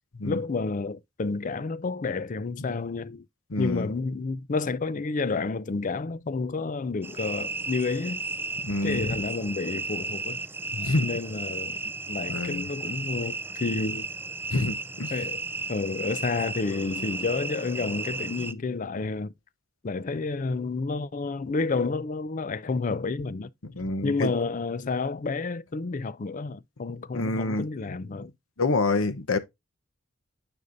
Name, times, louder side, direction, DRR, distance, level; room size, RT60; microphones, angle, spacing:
voice 1, 0.2-3.2 3.6-8.2 8.8-10.4 11.0-14.1 15.1-15.4 15.7-19.3 19.8-23.5 24.0-28.3, left 4 dB, 40° left, 0.5 m, -30 dB
voice 2, 3.5-3.9 8.6-9.1 10.7-11.1 12.3-12.7 14.5-15.1 23.7-24.3 27.1-28.2 28.6-29.4, left 2 dB, 85° left, 1.0 m, -28 dB
sound 1, 7.0-18.5, right 3 dB, 10° right, 0.5 m, -34 dB
9.7 x 5.4 x 2.6 m
head